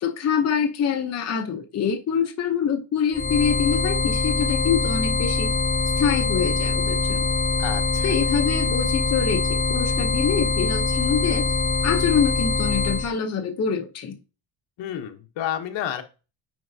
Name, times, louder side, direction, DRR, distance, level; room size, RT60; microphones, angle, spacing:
voice 1, 0.0-5.5 6.0-7.3 8.0-11.5 11.8-14.2, left 7 dB, 35° left, 3 dB, 0.8 m, -25 dB
sound 1, 3.1-13.1, left 3 dB, 20° left, 1.2 m, -23 dB
voice 2, 7.6-8.1 14.8-16.0, left 10 dB, 70° left, 6 dB, 1.1 m, -30 dB
9.5 x 4.4 x 2.7 m, 0.32 s
cardioid pair, 155°, 46 cm